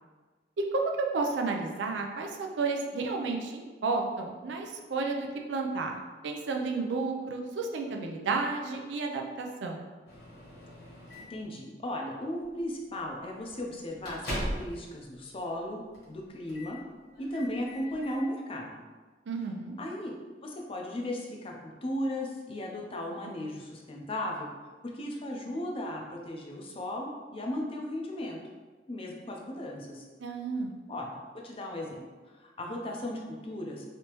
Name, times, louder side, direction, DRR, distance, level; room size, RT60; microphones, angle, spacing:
voice 1, 0.6-6.0 6.2-9.9 19.3-19.7 30.2-30.7, right 3 dB, 85° right, 2 dB, 0.4 m, -32 dB
Microwave oven, 10.1-11.5 12.4-12.6 13.0-13.1 13.5-14.8 15.1-15.2 15.9-16.2 16.5-16.8 17.1-18.2, equal, 65° left, 1.3 m, -39 dB
voice 2, 11.3-15.8 16.1-16.8 17.2-18.8 19.8-20.1 20.4-21.5 21.8-24.5 24.9-28.4 28.9-30.0 30.9-32.0 32.4-33.8, left 1 dB, 30° left, 0 dB, 0.5 m, -36 dB
3.3 x 2.8 x 2.9 m, 1.3 s
head